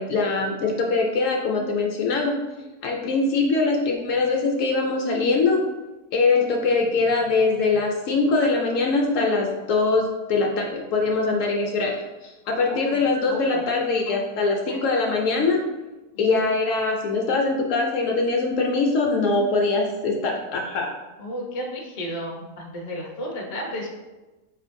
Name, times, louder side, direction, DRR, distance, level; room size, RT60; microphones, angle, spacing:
voice 1, 0.0-2.4 2.8-5.6 6.1-12.0 12.2-15.6 16.2-20.9, left 3 dB, 70° left, 0 dB, 0.8 m, -22 dB
voice 2, 12.7-13.6 16.1-16.4 21.2-23.9, equal, 50° left, -1 dB, 0.4 m, -33 dB
4.9 x 3.1 x 2.5 m, 1.1 s
omnidirectional pair, 1.6 m